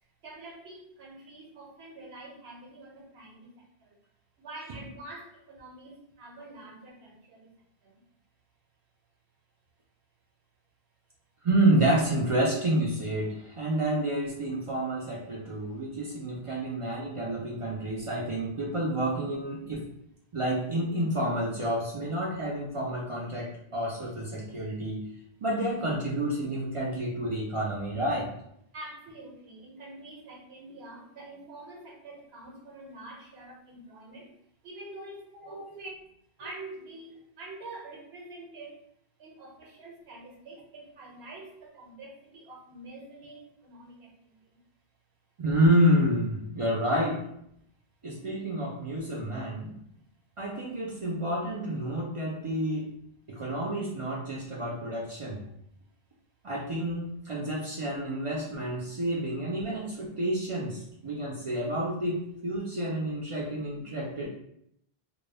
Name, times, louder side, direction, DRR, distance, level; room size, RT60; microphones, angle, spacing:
voice 1, 0.2-3.5 4.4-7.5 28.7-34.3 34.6-35.9 36.4-38.7 39.2-44.1, right 2 dB, 80° right, -1 dB, 1.0 m, -46 dB
voice 2, 11.4-19.8 20.3-25.0 25.4-28.3 35.5-35.8 45.4-47.2 48.0-49.7 50.4-52.9 53.3-55.4 56.4-64.3, right 1 dB, 55° right, -3 dB, 0.3 m, -29 dB
2.2 x 2.0 x 3.2 m, 0.73 s
omnidirectional pair, 1.0 m